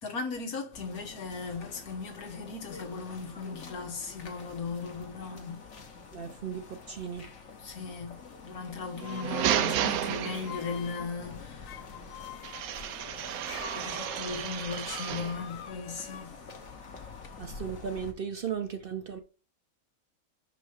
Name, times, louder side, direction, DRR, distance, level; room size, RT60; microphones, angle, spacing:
voice 1, 0.0-5.6 7.6-8.2 8.4-11.9 13.7-16.4, left 4 dB, 90° left, 1.9 m, -37 dB
sound 1, 0.7-18.1, left 4 dB, 55° left, 1.4 m, -47 dB
voice 2, 6.1-7.3 17.4-19.2, right 7 dB, 50° right, 0.7 m, -36 dB
sound 2, 8.7-9.3 10.2-11.1 11.6-12.7 13.4-16.3, left 9 dB, 70° left, 1.0 m, -45 dB
sound 3, 8.9-10.9 12.4-15.4, right 11 dB, 80° right, 1.0 m, -32 dB
6.0 x 5.0 x 4.8 m
omnidirectional pair, 1.5 m